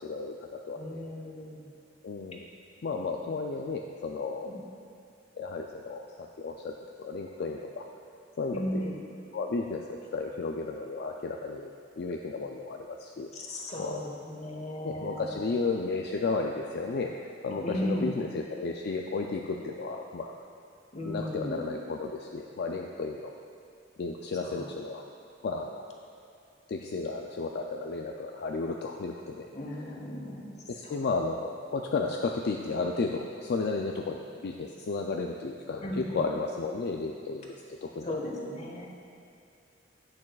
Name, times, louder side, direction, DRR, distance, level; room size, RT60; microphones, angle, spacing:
voice 1, 0.0-1.0 2.0-2.5 2.8-4.5 5.3-6.7 7.0-7.9 8.4-8.9 9.3-13.3 13.8-14.0 14.8-20.3 21.0-23.3 24.0-25.0 25.4-25.8 26.7-29.5 30.7-38.1, left 3 dB, 60° left, 1 dB, 0.4 m, -33 dB
voice 2, 0.8-1.7 3.2-3.3 4.4-4.6 8.5-8.9 13.3-15.4 17.6-18.1 20.9-21.6 24.4-24.7 29.5-30.5 30.8-31.0 35.8-36.2 38.0-38.9, equal, 35° left, 0 dB, 1.1 m, -36 dB
10.5 x 8.7 x 2.3 m, 2.5 s
head